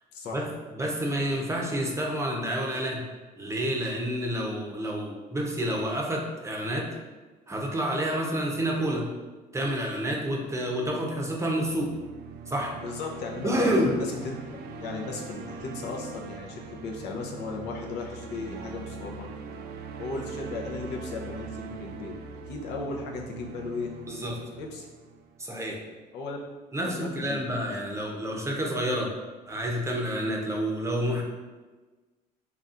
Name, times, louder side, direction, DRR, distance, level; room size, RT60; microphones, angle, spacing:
voice 1, 0.1-0.5 12.8-19.3 20.0-22.1 22.5-23.9 24.6-24.9 26.1-26.5 26.8-27.6 27.9-28.0, left 4 dB, 80° left, 0 dB, 0.7 m, -36 dB
voice 2, 0.7-3.1 3.4-6.9 7.5-9.1 9.5-12.0 12.5-12.7 13.4-14.0 24.1-24.4 25.4-25.8 26.7-29.1 29.5-31.2, equal, 15° right, 0 dB, 0.6 m, -29 dB
sound 1, 11.6-25.7, right 5 dB, 70° right, 0.4 m, -41 dB
4.1 x 3.4 x 2.5 m, 1.3 s
cardioid pair, 110°, 17 cm